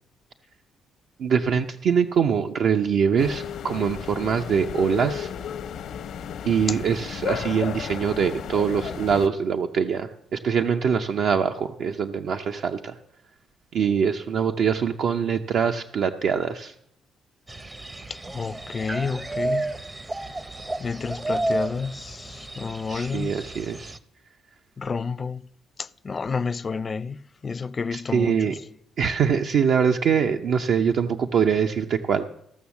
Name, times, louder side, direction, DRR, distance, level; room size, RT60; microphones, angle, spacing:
voice 1, 1.2-5.3 6.4-13.0 13.7-16.7 22.9-24.0 27.9-28.6 29.0-32.2, right 7 dB, 70° right, 0.6 m, -23 dB
sound 1, 3.2-9.3, left 8 dB, 75° left, 0.8 m, -33 dB
sound 2, 17.5-24.0, right 2 dB, 20° right, 0.5 m, -31 dB
voice 2, 18.1-19.7 20.8-23.3 24.8-25.4 25.8-28.6, left 5 dB, 35° left, 0.4 m, -30 dB
14.5 x 6.3 x 7.0 m
cardioid pair, 100°, 0 cm